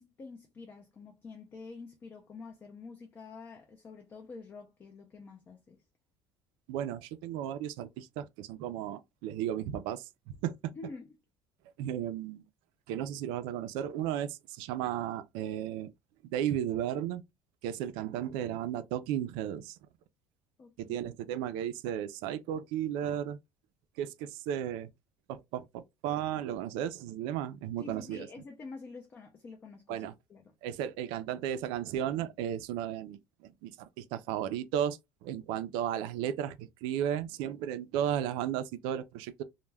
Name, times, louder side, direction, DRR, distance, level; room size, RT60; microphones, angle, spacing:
voice 1, 0.0-5.8 10.8-11.1 20.6-21.1 27.8-30.5, left 4 dB, 25° left, 0.4 m, -48 dB
voice 2, 6.7-10.6 11.8-12.5 12.9-15.9 16.3-17.2 17.6-19.8 20.8-23.4 24.0-24.9 25.3-28.3 29.9-30.1 30.6-39.4, right 10 dB, 80° right, 0.4 m, -34 dB
2.2 x 2.1 x 3.2 m
cardioid pair, 160°, 8 cm